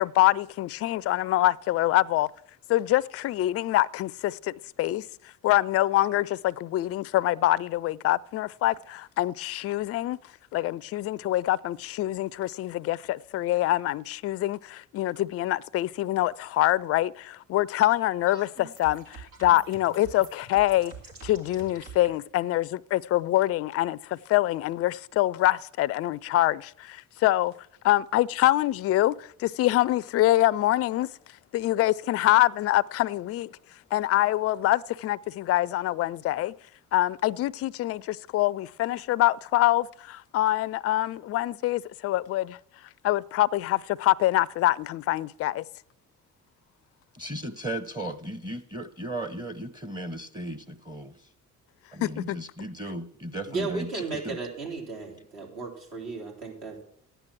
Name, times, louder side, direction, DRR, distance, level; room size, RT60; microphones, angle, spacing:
voice 1, 0.0-2.3 2.7-5.1 5.4-10.2 10.5-20.9 21.2-27.5 27.8-31.1 31.5-33.5 33.9-36.5 36.9-42.6 43.0-45.6 52.0-52.4, left 15 dB, 35° left, 0.4 m, -25 dB
sound 1, 17.8-22.1, right 5 dB, 80° right, 2.1 m, -46 dB
voice 2, 47.1-51.1 51.9-53.9 54.2-54.4, right 1 dB, 10° right, 0.8 m, -36 dB
voice 3, 53.5-56.8, right 4 dB, 65° right, 3.5 m, -35 dB
12.5 x 9.0 x 6.0 m
figure-of-eight pair, 45°, 44 cm